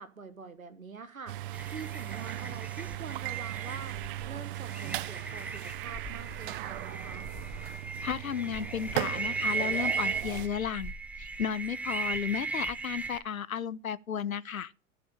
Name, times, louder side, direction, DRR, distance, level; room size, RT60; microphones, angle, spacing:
voice 1, 0.0-1.4 1.7-4.0 4.3-7.3, right 5 dB, 85° right, 1.5 m, -45 dB
sound 1, 1.3-10.5, right 16 dB, 40° right, 0.5 m, -38 dB
sound 2, 1.5-13.2, right 4 dB, 5° right, 0.7 m, -37 dB
voice 2, 8.0-10.9 11.2-14.7, left 8 dB, 85° left, 0.7 m, -34 dB
13.5 x 5.1 x 6.7 m
figure-of-eight pair, 90°, 40 cm